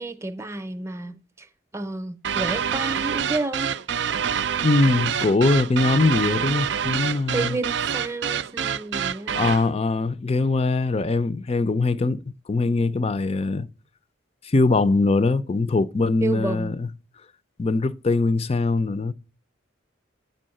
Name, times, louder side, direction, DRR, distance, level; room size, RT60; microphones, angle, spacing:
voice 1, 0.0-1.5 1.7-3.7 7.3-9.5 16.2-16.7, right 3 dB, 15° right, 0.7 m, -30 dB
sound 1, 2.2-9.7, right 8 dB, 60° right, 0.4 m, -26 dB
voice 2, 4.6-7.6 9.4-12.2 12.5-13.7 14.4-16.9 17.6-19.1, left 3 dB, 30° left, 0.5 m, -22 dB
9.1 x 5.5 x 7.6 m
head